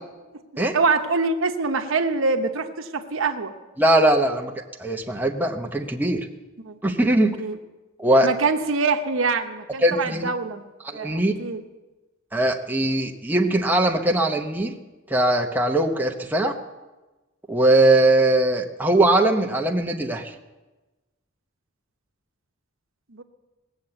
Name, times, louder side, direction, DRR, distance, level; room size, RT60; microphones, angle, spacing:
voice 1, 0.7-3.5 6.6-6.8 7.4-7.6 8.2-10.6 10.9-11.6 23.1-23.2, right 4 dB, 70° right, 6 dB, 1.0 m, -24 dB
voice 2, 3.8-4.5 4.8-6.3 6.8-7.4 8.0-8.3 9.8-10.3 10.8-11.3 12.3-14.8 15.1-16.5 17.5-20.3, right 1 dB, 10° right, 2 dB, 0.9 m, -20 dB
19.0 x 7.3 x 7.9 m, 1.1 s
head